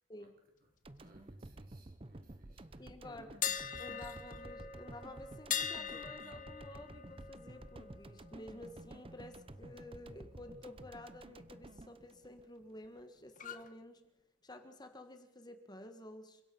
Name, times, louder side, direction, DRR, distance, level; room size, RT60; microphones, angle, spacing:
sound 1, 0.8-13.1, right 1 dB, 30° right, 0.8 m, -52 dB
voice 1, 1.0-3.8, right 1 dB, 50° right, 4.8 m, -64 dB
voice 2, 2.8-3.3 3.8-14.0 14.4-16.4, left 1 dB, 20° left, 1.6 m, -51 dB
sound 2, 3.4-9.3 9.6-9.9 13.4-13.7, left 8 dB, 45° left, 1.3 m, -42 dB
29.5 x 16.5 x 5.5 m
head